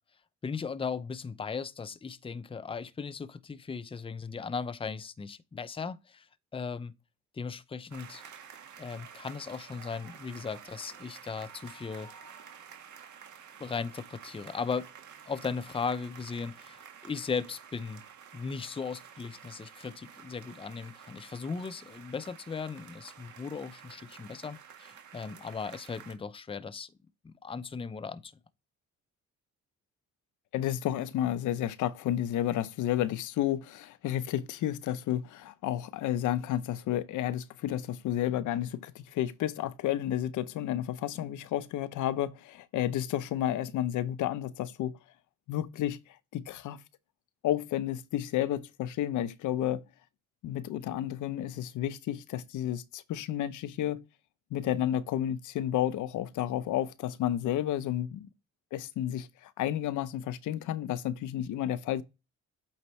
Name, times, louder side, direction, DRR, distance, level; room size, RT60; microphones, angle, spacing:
voice 1, 0.4-6.3 6.5-6.9 7.3-8.2 8.8-12.1 13.6-14.9 15.3-18.0 18.3-26.9 27.2-28.3, left 5 dB, 20° left, 0.6 m, -37 dB
sound 1, 7.9-26.2, right 8 dB, 70° right, 1.9 m, -51 dB
voice 2, 30.5-45.0 45.5-46.8 47.4-49.8 50.4-54.0 54.5-58.3 58.7-62.0, left 12 dB, 80° left, 0.7 m, -31 dB
8.5 x 4.4 x 3.1 m
cardioid pair, 90°, 30 cm